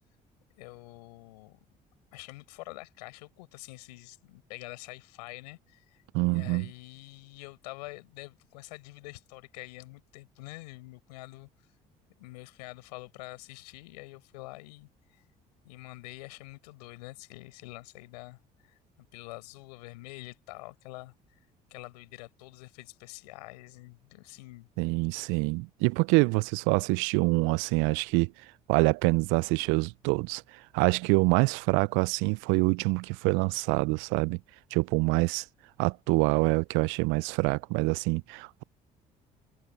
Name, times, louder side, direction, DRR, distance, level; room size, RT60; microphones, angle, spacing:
voice 1, 0.6-1.6 2.1-6.0 6.3-11.5 12.2-15.2 15.6-21.2 21.7-24.7, left 22 dB, 80° left, 5.5 m, -46 dB
voice 2, 6.1-6.7 24.8-28.3 28.7-30.4 30.7-34.4 34.7-35.4 35.8-38.6, right 28 dB, 70° right, 0.5 m, -26 dB
hypercardioid pair, 55°, 21 cm